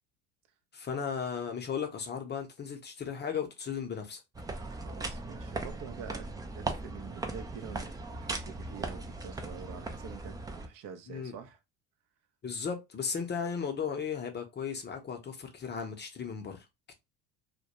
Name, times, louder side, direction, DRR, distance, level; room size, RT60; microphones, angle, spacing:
voice 1, 0.7-4.2 11.1-11.3 12.4-16.6, left 6 dB, 25° left, 0.6 m, -35 dB
sound 1, 4.3-10.7, right 2 dB, 10° right, 0.3 m, -38 dB
voice 2, 4.6-6.3 6.5-11.6, right 7 dB, 55° right, 0.6 m, -47 dB
2.2 x 2.1 x 2.8 m
hypercardioid pair, 75°, 38 cm